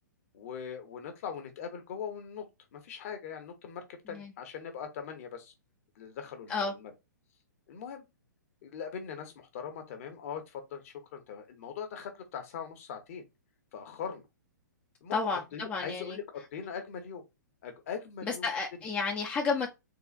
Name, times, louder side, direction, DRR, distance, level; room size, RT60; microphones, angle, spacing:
voice 1, 0.3-2.4 2.7-5.5 6.0-6.9 7.7-8.0 8.6-13.2 13.7-14.2 15.0-17.2 17.6-18.5, left 7 dB, 45° left, 1.0 m, -41 dB
voice 2, 15.1-16.2 18.2-19.7, left 4 dB, 15° left, 0.5 m, -31 dB
3.8 x 2.5 x 2.4 m
figure-of-eight pair, 115°, 10 cm